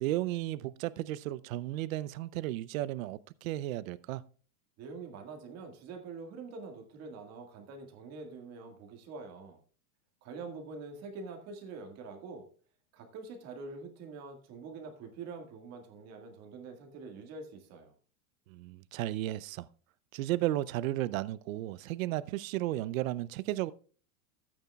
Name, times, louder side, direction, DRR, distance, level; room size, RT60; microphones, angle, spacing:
voice 1, 0.0-4.2 18.5-19.7 20.1-23.7, right 15 dB, 65° right, 0.6 m, -34 dB
voice 2, 4.8-9.6 10.2-12.5 12.9-17.9, right 4 dB, 35° right, 1.9 m, -45 dB
13.0 x 8.9 x 2.3 m
supercardioid pair, 145°, 45 cm